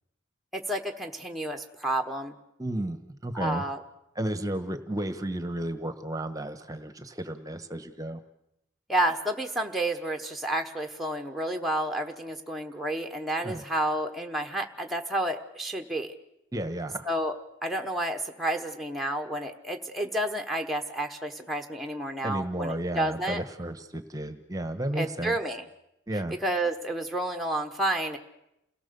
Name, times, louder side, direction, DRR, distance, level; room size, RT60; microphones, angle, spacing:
voice 1, 0.5-2.3 3.3-3.8 8.9-16.1 17.0-17.3 17.6-23.4 24.9-25.6 26.4-28.2, right 1 dB, ahead, 4 dB, 1.1 m, -30 dB
voice 2, 2.6-3.6 4.1-8.2 13.4-13.6 16.5-17.1 22.2-25.4 26.1-26.3, right 1 dB, 20° right, 9 dB, 1.1 m, -33 dB
29.0 x 18.0 x 6.9 m, 0.84 s
head